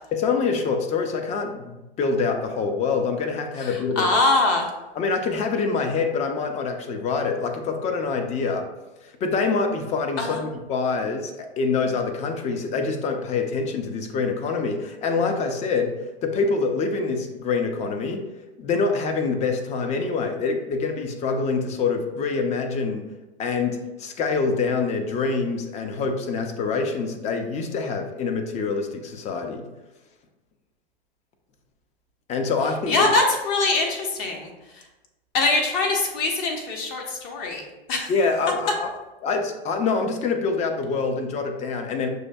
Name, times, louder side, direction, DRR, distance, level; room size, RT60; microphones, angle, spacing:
voice 1, 0.1-4.1 4.9-8.7 9.0-15.9 16.2-18.2 18.6-23.1 23.4-29.7 32.3-33.1 38.1-38.9 39.2-42.1, left 4 dB, 20° left, 5 dB, 0.4 m, -25 dB
voice 2, 3.6-4.7 10.2-10.4 32.9-34.5 35.3-37.6 37.9-38.1, left 3 dB, 45° left, 2 dB, 0.9 m, -23 dB
6.1 x 2.6 x 2.2 m, 1.0 s
hypercardioid pair, 105°, 31 cm